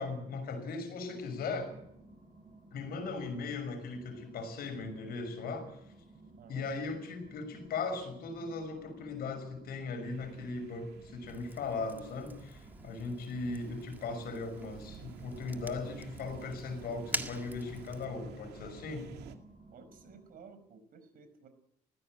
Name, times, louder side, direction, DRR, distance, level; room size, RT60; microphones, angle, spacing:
voice 1, 0.0-1.7 2.7-5.8 6.5-19.1, left 3 dB, 65° left, 9 dB, 6.0 m, -38 dB
sound 1, 0.9-20.7, right 2 dB, 25° right, 7.8 m, -57 dB
voice 2, 6.4-6.7 13.6-13.7 19.7-21.5, right 5 dB, 60° right, 9 dB, 5.1 m, -54 dB
sound 2, 10.0-19.4, right 9 dB, 75° right, 2.3 m, -53 dB
Fire, 11.3-18.1, right 2 dB, 10° right, 1.8 m, -45 dB
19.5 x 15.5 x 9.0 m, 0.73 s
cardioid pair, 110°, 17 cm